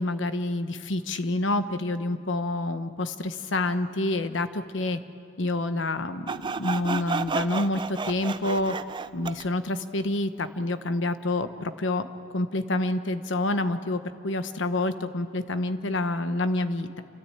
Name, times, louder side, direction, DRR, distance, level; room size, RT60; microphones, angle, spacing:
voice 1, 0.0-5.0 5.4-8.8 9.1-12.1 12.3-17.0, left 2 dB, 80° left, 10 dB, 1.0 m, -28 dB
Sawing, 6.3-9.5, right 4 dB, 25° right, 0.4 m, -31 dB
29.0 x 13.5 x 8.9 m, 2.6 s
head